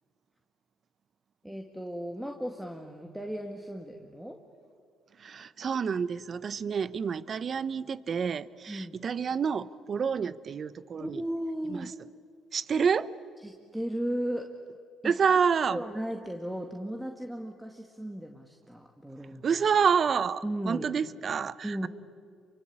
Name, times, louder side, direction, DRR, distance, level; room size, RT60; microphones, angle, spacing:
voice 1, 1.4-4.4 8.7-9.0 11.0-11.9 13.4-14.6 15.0-15.4 15.7-19.4 20.4-20.9 21.6-21.9, equal, 5° right, 3 dB, 2.2 m, -36 dB
voice 2, 5.2-11.2 11.7-11.9 12.5-13.1 15.0-15.8 19.4-21.9, right 6 dB, 50° right, 17 dB, 0.9 m, -28 dB
28.0 x 24.0 x 8.8 m, 2.2 s
supercardioid pair, 75°, 0 cm